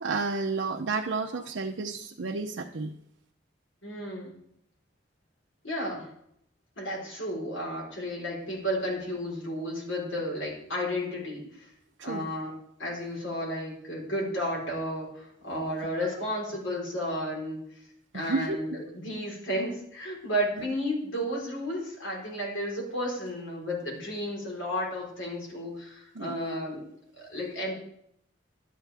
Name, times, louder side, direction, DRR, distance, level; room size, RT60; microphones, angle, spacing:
voice 1, 0.0-2.9 12.0-12.3 18.1-18.6 26.1-26.3, right 4 dB, 70° right, 0 dB, 0.6 m, -31 dB
voice 2, 3.8-4.4 5.6-6.1 6.8-11.7 12.0-12.5 12.8-17.6 18.1-26.9 27.2-27.7, equal, 85° left, -3 dB, 4.0 m, -33 dB
12.0 x 8.7 x 3.4 m, 0.72 s
head